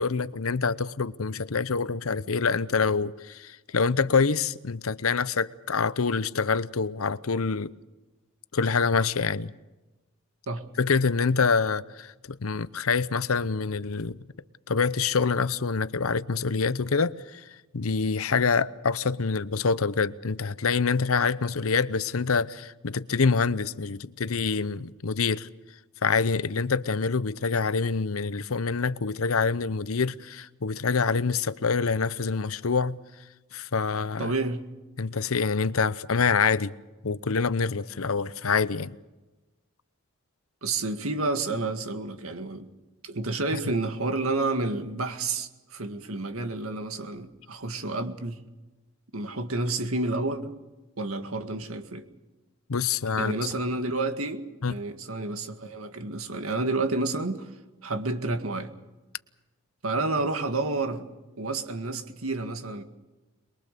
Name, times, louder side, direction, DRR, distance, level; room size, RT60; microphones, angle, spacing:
voice 1, 0.0-7.7 8.5-9.5 10.8-14.2 14.7-17.4 17.7-25.5 26.0-33.0 33.5-34.3 35.0-36.7 37.0-38.9 52.7-53.3 54.6-54.7, left 5 dB, 85° left, 0.8 m, -26 dB
voice 2, 34.2-34.6 40.6-42.7 43.0-48.4 49.1-50.5 51.0-52.1 53.2-57.5 57.8-58.7 59.8-61.1 61.4-62.8, right 2 dB, 90° right, 2.0 m, -30 dB
23.0 x 22.5 x 6.8 m
head